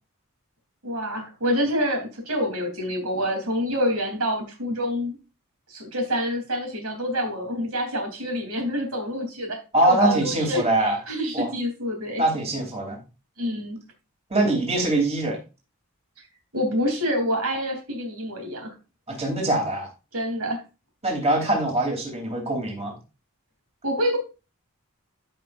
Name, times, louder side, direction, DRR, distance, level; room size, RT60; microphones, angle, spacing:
voice 1, 0.8-5.2 5.7-12.2 13.4-13.8 16.5-18.7 20.1-20.6 23.8-24.2, equal, 85° right, 3.5 m, -27 dB
voice 2, 9.7-11.0 11.3-11.5 12.2-13.0 14.3-15.4 19.1-19.9 21.0-23.0, right 1 dB, 30° right, 3.3 m, -23 dB
14.5 x 5.9 x 2.6 m
head